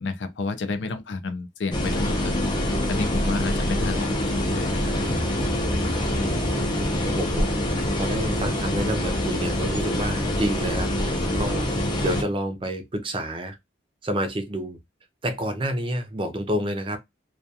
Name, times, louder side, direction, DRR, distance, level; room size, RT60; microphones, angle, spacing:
voice 1, 0.0-2.4 2.7-4.9, left 3 dB, 75° left, 0.5 m, -31 dB
sound 1, 1.7-12.2, left 1 dB, 25° left, 0.5 m, -25 dB
voice 2, 6.1-7.5 8.0-13.6 14.0-14.8 15.2-17.0, right 1 dB, 30° right, 0.4 m, -29 dB
2.3 x 2.3 x 2.6 m
head